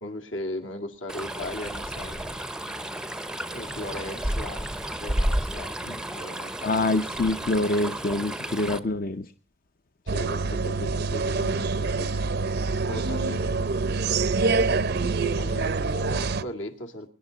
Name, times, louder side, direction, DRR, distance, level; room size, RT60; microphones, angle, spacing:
voice 1, 0.0-2.5 3.5-4.7 5.0-5.8 6.1-6.9 10.0-12.2 12.9-13.8 15.4-17.1, left 1 dB, 70° left, 3 dB, 2.3 m, -37 dB
Stream, 1.1-8.8, right 1 dB, 5° right, 0.6 m, -32 dB
voice 2, 6.6-9.2, left 2 dB, 45° left, 9 dB, 0.7 m, -25 dB
sound 1, 10.1-16.4, right 4 dB, 50° right, 0.6 m, -26 dB
24.5 x 10.5 x 4.0 m, 0.42 s
head